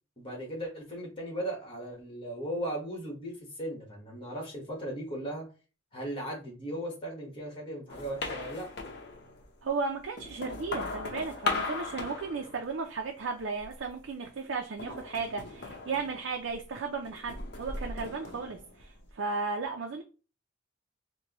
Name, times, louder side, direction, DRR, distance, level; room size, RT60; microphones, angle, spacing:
voice 1, 0.2-5.5 5.9-8.7, right 1 dB, 25° left, 1.4 m, -37 dB
sound 1, 7.9-9.5 10.0-13.0 13.4-14.0 14.8-16.7 17.0-19.1, left 3 dB, 60° left, 0.7 m, -38 dB
voice 2, 9.6-20.0, right 4 dB, 70° right, 0.5 m, -35 dB
4.6 x 2.2 x 2.9 m
head